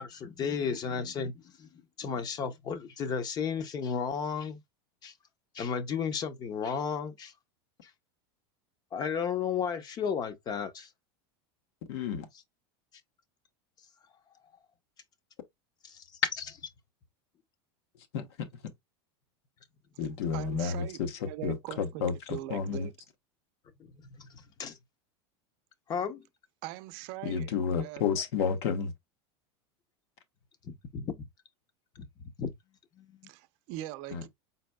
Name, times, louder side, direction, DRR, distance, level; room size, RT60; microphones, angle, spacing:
voice 1, 0.0-1.7 2.0-4.6 5.0-5.1 5.5-7.3 7.8-7.9 8.9-10.9 15.8-16.0 24.0-24.8 25.9-26.3 30.6-31.1 32.0-32.1 32.4-32.5 33.0-33.2, left 6 dB, 30° left, 0.7 m, -33 dB
voice 2, 11.9-12.3 18.1-18.7 20.0-22.9 27.2-28.9 34.1-34.2, left 6 dB, 75° left, 1.0 m, -31 dB
voice 3, 20.3-22.9 26.6-28.0 33.2-34.3, right 15 dB, 55° right, 0.6 m, -41 dB
4.4 x 4.0 x 2.2 m
supercardioid pair, 145°, 14 cm